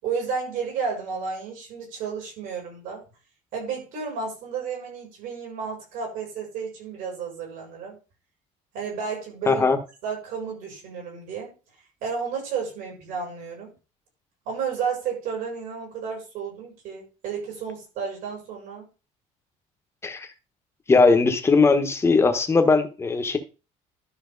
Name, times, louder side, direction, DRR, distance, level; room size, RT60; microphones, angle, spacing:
voice 1, 0.0-3.1 3.5-8.0 8.7-9.7 10.0-11.5 12.0-13.7 14.4-18.9, right 6 dB, 70° right, 6.7 m, -32 dB
voice 2, 9.5-9.8 20.0-20.3 20.9-23.4, left 4 dB, 15° left, 1.2 m, -19 dB
12.0 x 6.2 x 3.9 m
cardioid pair, 145°, 15 cm